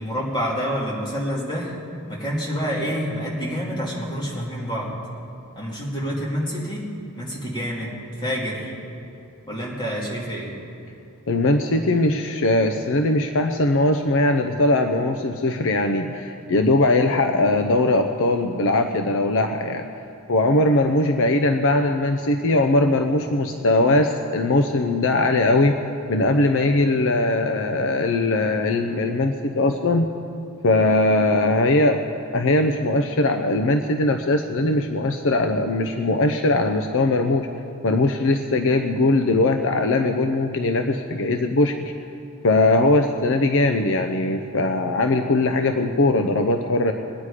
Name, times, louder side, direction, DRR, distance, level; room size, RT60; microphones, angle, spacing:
voice 1, 0.0-1.8 2.1-4.9 5.6-6.9 7.2-7.9 8.2-8.7 9.5-10.5, equal, 20° left, -4 dB, 2.6 m, -27 dB
voice 2, 11.3-19.9 20.3-25.7 26.1-30.1 30.6-32.0 32.3-37.5 37.8-41.9 42.4-46.9, left 2 dB, 60° left, 6 dB, 0.6 m, -20 dB
21.0 x 9.8 x 4.9 m, 2.6 s
head